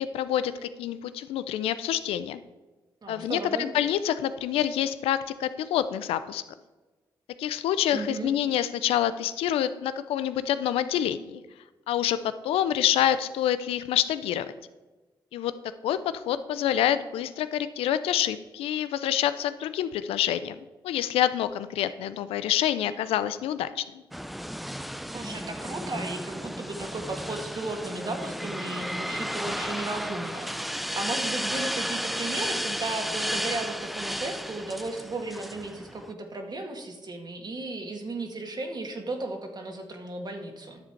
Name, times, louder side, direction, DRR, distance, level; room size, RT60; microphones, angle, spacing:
voice 1, 0.0-2.4 3.1-6.4 7.4-11.4 11.9-14.5 15.3-15.5 15.8-20.6 20.8-23.8, left 11 dB, 90° left, 13 dB, 0.4 m, -27 dB
voice 2, 3.0-3.7 7.9-8.3 25.1-40.8, right 2 dB, 45° right, 3 dB, 1.7 m, -35 dB
sound 1, 24.1-36.1, equal, ahead, 0.5 m, -33 dB
10.0 x 6.9 x 4.5 m, 1.2 s
supercardioid pair, 45°, 10 cm